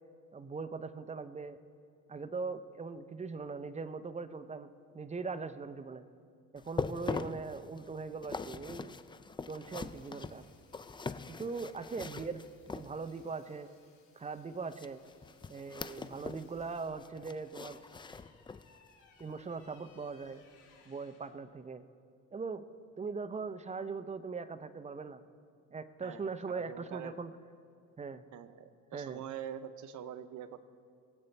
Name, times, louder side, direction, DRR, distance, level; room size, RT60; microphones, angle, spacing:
voice 1, 0.3-1.6 2.1-6.0 6.5-8.9 9.5-10.4 11.3-12.4 12.7-13.7 14.1-15.0 15.5-17.8 19.2-20.4 20.9-21.8 22.3-22.7 23.0-25.2 25.7-27.3 28.0-28.2 28.9-29.2, right 4 dB, 25° right, 12 dB, 0.6 m, -40 dB
sound 1, 6.6-13.3 14.7-16.5 16.8-18.8 19.2-19.4 19.9-20.0, left 4 dB, 15° left, 0.4 m, -42 dB
Sawing, 9.6-16.9, left 5 dB, 70° left, 2.8 m, -70 dB
sound 2, 16.4-21.3, left 5 dB, 85° left, 2.9 m, -64 dB
voice 2, 26.0-27.1 28.3-30.6, right 9 dB, 75° right, 11 dB, 0.7 m, -44 dB
22.5 x 8.1 x 3.3 m, 2.3 s
cardioid pair, 90°, 30 cm